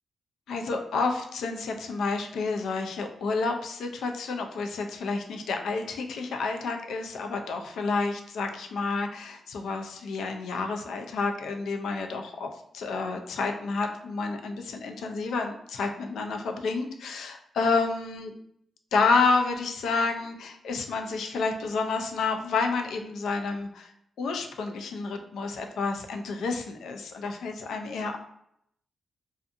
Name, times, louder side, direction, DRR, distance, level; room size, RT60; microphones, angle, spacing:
voice 1, 0.5-18.3 18.9-23.9 24.2-28.2, left 4 dB, 90° left, 4 dB, 0.4 m, -29 dB
2.6 x 2.4 x 2.5 m, 0.74 s
wide cardioid pair, 150°, 0 cm